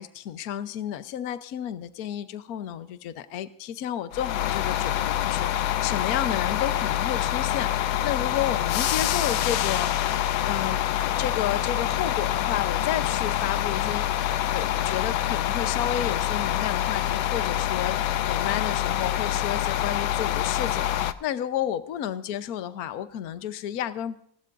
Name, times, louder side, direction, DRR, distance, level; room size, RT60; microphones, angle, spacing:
voice 1, 0.0-9.9 10.4-10.8 11.2-14.1 14.5-24.2, left 10 dB, 55° left, 11 dB, 1.2 m, -32 dB
sound 1, 4.1-21.1, left 12 dB, 80° left, 1.5 m, -26 dB
29.5 x 12.0 x 2.6 m, 0.65 s
omnidirectional pair, 2.2 m